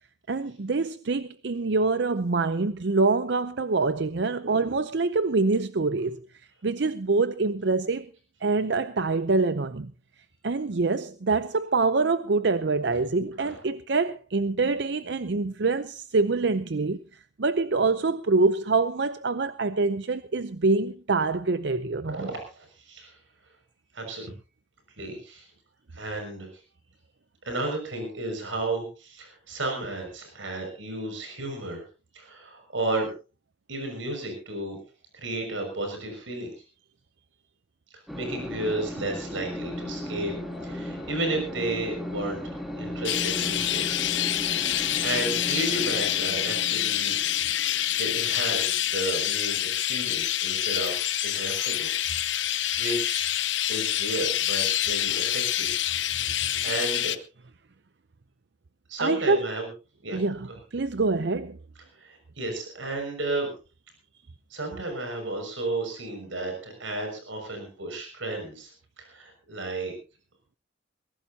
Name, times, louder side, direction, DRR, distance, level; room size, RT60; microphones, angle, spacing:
voice 1, 0.3-6.2 6.6-8.1 8.4-9.9 10.4-17.0 17.4-22.3 59.0-59.5 60.1-60.5 60.7-61.6, right 3 dB, 60° right, 0.6 m, -25 dB
voice 2, 22.0-23.2 23.9-24.3 25.0-25.5 25.9-26.6 27.4-31.8 32.1-33.1 33.7-34.8 35.1-36.5 38.1-40.3 40.6-42.4 42.8-44.0 44.4-47.2 48.0-51.9 52.3-53.3 53.7-55.7 56.2-57.2 58.9-59.7 60.0-60.2 62.0-63.5 64.5-69.9, right 2 dB, 85° right, 6.2 m, -33 dB
sound 1, 38.1-49.1, left 1 dB, ahead, 2.6 m, -36 dB
Chirp tweet, 43.0-57.2, left 12 dB, 70° left, 0.9 m, -27 dB
22.0 x 16.5 x 2.8 m
head